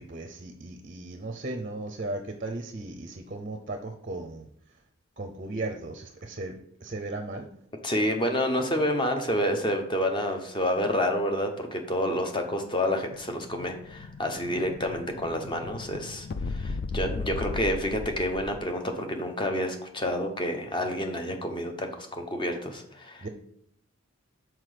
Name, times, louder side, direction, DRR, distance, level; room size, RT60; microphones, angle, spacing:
voice 1, 0.0-4.5 5.2-6.5 6.8-7.5 23.2-23.3, right 2 dB, 35° right, 6 dB, 0.6 m, -36 dB
voice 2, 7.8-23.3, equal, 20° left, 4 dB, 0.8 m, -29 dB
Explosion, 12.6-18.7, left 3 dB, 45° left, 0.3 m, -37 dB
5.9 x 4.6 x 4.9 m, 0.68 s
head